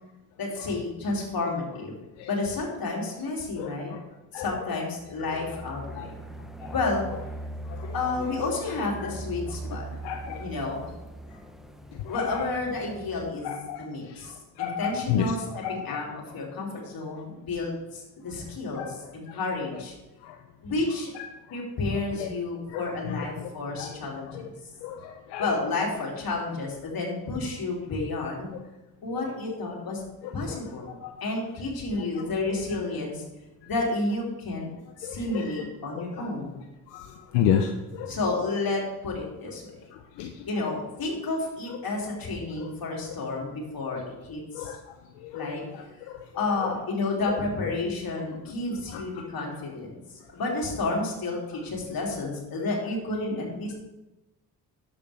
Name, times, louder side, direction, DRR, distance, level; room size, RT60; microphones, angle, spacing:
voice 1, 0.4-1.9 2.2-3.9 4.3-6.1 6.7-7.0 7.9-9.9 10.4-10.9 12.1-13.5 13.8-16.1 16.3-19.9 20.6-21.1 21.5-24.3 25.4-28.5 29.0-30.0 30.3-33.2 33.6-34.7 35.0-36.5 38.1-39.7 40.5-44.7 45.3-45.6 46.3-50.0 50.3-53.7, left 3 dB, 55° left, -2 dB, 3.2 m, -31 dB
voice 2, 3.6-4.0 4.3-4.5 5.5-5.6 6.0-6.1 6.6-6.7 7.7-8.0 9.0-9.1 9.5-10.5 12.0-12.4 13.4-15.3 15.6-16.0 18.8-18.9 19.3-19.4 20.2-20.4 21.1-21.6 22.2-22.3 22.7-23.5 23.8-24.0 24.3-24.5 24.8-25.5 30.5-30.6 31.0-31.1 31.9-32.2 35.0-35.6 36.2-36.3 36.9-38.1 39.9-40.5 42.6-42.7 44.5-44.8 45.2-46.7 47.3-47.4 48.9-49.2, left 8 dB, 85° left, 5 dB, 0.7 m, -33 dB
sound 1, 5.0-13.3, right 2 dB, ahead, 0.8 m, -40 dB
11.0 x 7.7 x 3.5 m, 0.99 s
supercardioid pair, 50°, 41 cm